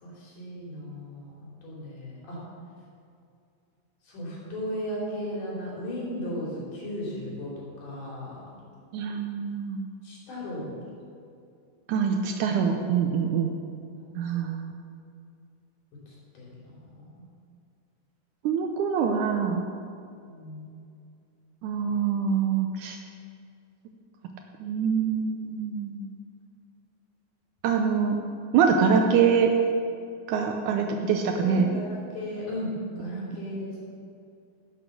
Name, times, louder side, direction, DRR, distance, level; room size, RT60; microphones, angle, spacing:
voice 1, 0.0-2.4 4.0-7.5 7.8-8.4 10.0-10.8 14.0-14.4 16.1-16.8 17.1-17.3 20.2-20.7 30.8-31.0 31.4-32.7 33.0-33.8, left 1 dB, 60° left, -5 dB, 4.4 m, -36 dB
voice 2, 8.9-9.8 11.9-13.5 14.2-14.7 18.4-19.7 21.6-23.0 24.6-26.1 27.6-28.2 28.5-29.5 30.3-31.7, right 6 dB, 85° right, 3 dB, 1.8 m, -24 dB
11.0 x 8.1 x 6.6 m, 2.4 s
omnidirectional pair, 4.3 m